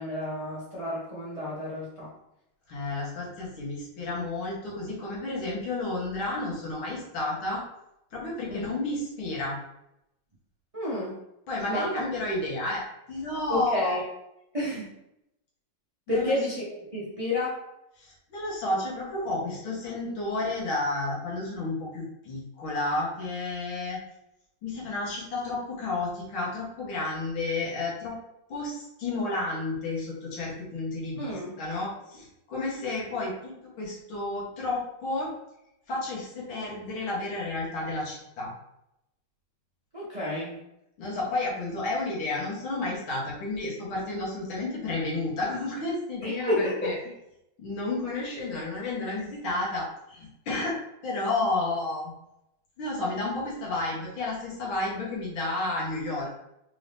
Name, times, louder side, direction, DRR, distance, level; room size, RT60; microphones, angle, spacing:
voice 1, 0.0-2.1 8.5-8.7 10.7-11.2 11.7-11.9 13.5-14.0 14.5-14.9 16.1-16.6 16.9-17.6 31.2-31.5 39.9-40.5 46.2-46.9, left 1 dB, 30° right, -7 dB, 0.7 m, -30 dB
voice 2, 2.7-7.6 8.1-9.6 11.5-14.0 16.1-16.4 18.0-24.0 24.6-28.2 28.5-35.3 35.9-38.5 41.0-47.0 47.6-50.7 51.0-52.1 52.8-56.4, left 2 dB, 90° left, -4 dB, 2.2 m, -31 dB
4.7 x 2.7 x 3.4 m, 0.84 s
omnidirectional pair, 2.2 m